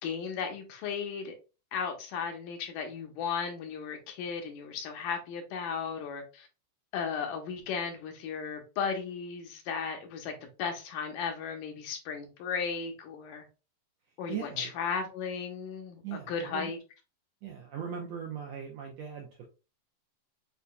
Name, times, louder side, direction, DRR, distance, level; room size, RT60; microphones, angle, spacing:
voice 1, 0.0-1.3 1.7-6.5 6.9-13.5 14.2-16.8, left 6 dB, 85° left, 2.5 m, -35 dB
voice 2, 14.3-14.7 16.0-16.7 17.4-19.5, right 8 dB, 75° right, 1.6 m, -39 dB
8.0 x 2.8 x 2.2 m
omnidirectional pair, 3.8 m